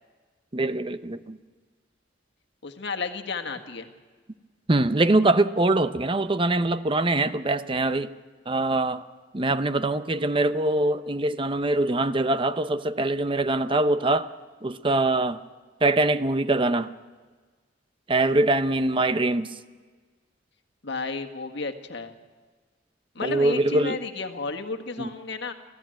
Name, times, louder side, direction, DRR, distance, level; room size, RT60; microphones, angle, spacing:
voice 1, 0.5-1.4 4.7-8.1 8.5-9.0 9.3-14.3 14.6-15.4 15.8-16.9 18.1-19.5 23.2-24.0 25.0-25.1, right 2 dB, 30° right, 12 dB, 0.7 m, -23 dB
voice 2, 2.6-3.9 20.8-22.1 23.1-25.5, left 4 dB, 65° left, 5 dB, 1.7 m, -32 dB
24.5 x 15.5 x 9.0 m, 1.4 s
head